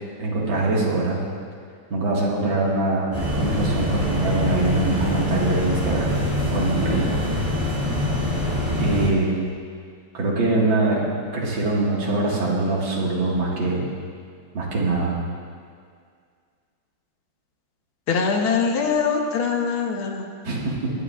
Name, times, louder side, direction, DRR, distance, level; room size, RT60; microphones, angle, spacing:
voice 1, 0.2-1.2 1.9-6.2 6.5-7.1 8.8-9.3 10.1-11.0 11.3-13.9 14.5-15.2 20.4-20.9, right 2 dB, 75° right, -4 dB, 2.5 m, -23 dB
sound 1, 3.1-9.1, left 1 dB, 30° right, 3.2 m, -24 dB
voice 2, 18.1-20.3, left 5 dB, 80° left, 2 dB, 1.9 m, -22 dB
21.0 x 9.6 x 2.4 m, 2.1 s
omnidirectional pair, 2.2 m